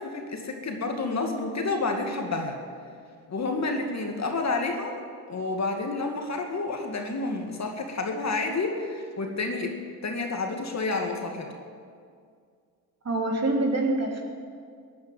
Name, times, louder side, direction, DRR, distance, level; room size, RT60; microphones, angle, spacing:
voice 1, 0.0-2.6 3.3-5.0 5.3-9.8 10.0-11.5, left 3 dB, 35° left, 3 dB, 2.4 m, -29 dB
voice 2, 13.0-14.2, right 2 dB, 30° right, 2 dB, 3.0 m, -25 dB
15.5 x 9.5 x 9.3 m, 2.2 s
hypercardioid pair, 70°, 49 cm